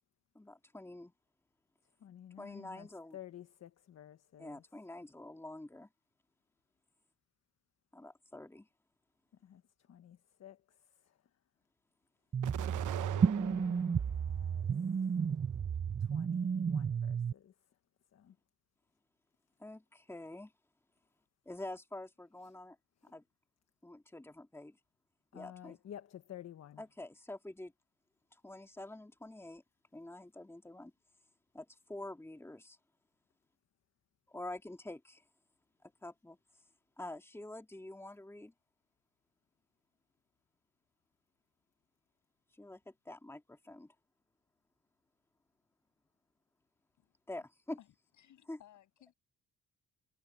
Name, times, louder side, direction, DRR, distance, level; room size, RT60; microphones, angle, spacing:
voice 1, 0.3-1.1 2.4-3.2 4.4-5.9 7.9-8.7 19.6-20.5 21.5-22.8 23.1-23.2 23.8-24.8 25.3-25.8 26.8-27.7 28.3-29.6 29.9-30.9 31.5-32.8 34.3-35.2 36.0-36.4 37.0-38.5 42.5-43.9 47.3-47.8 48.5-48.6, left 1 dB, 10° left, 2.6 m, -47 dB
voice 2, 2.0-4.6 9.4-9.6 9.9-10.6 12.7-14.7 16.0-17.5 18.1-18.3 25.3-26.8, left 10 dB, 60° left, 1.4 m, -52 dB
sound 1, 12.3-17.3, right 6 dB, 30° right, 0.8 m, -32 dB
Explosion, 12.4-14.1 14.6-15.5, right 14 dB, 80° right, 1.1 m, -44 dB
voice 3, 47.8-49.1, left 12 dB, 75° left, 7.6 m, -61 dB
cardioid pair, 90°, 30 cm